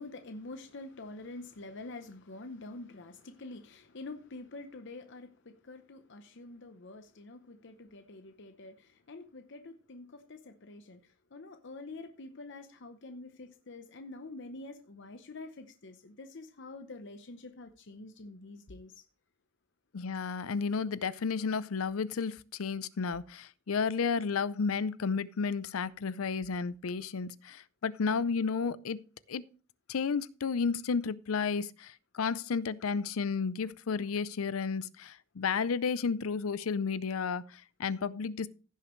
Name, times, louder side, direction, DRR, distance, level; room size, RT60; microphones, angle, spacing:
voice 1, 0.0-19.0, left 2 dB, 60° left, 0.8 m, -47 dB
voice 2, 19.9-29.0 29.3-29.4 29.9-38.5, left 5 dB, 90° left, 0.5 m, -32 dB
16.0 x 6.6 x 3.1 m
head